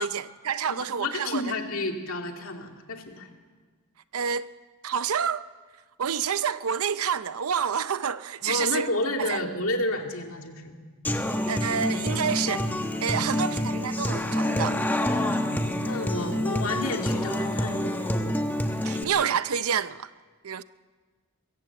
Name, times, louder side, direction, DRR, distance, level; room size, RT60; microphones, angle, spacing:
voice 1, 0.0-1.5 4.1-4.5 4.8-5.4 6.0-8.9 9.2-9.4 11.5-12.7 13.0-14.8 16.2-16.4 18.8-20.1 20.4-20.6, right 7 dB, 80° right, 0.6 m, -28 dB
voice 2, 1.0-3.3 8.4-10.8 13.2-13.3 15.1-18.0, left 2 dB, 70° left, 2.4 m, -31 dB
Human voice / Acoustic guitar, 11.0-19.0, left 1 dB, 10° left, 1.1 m, -27 dB
22.5 x 14.5 x 8.0 m
head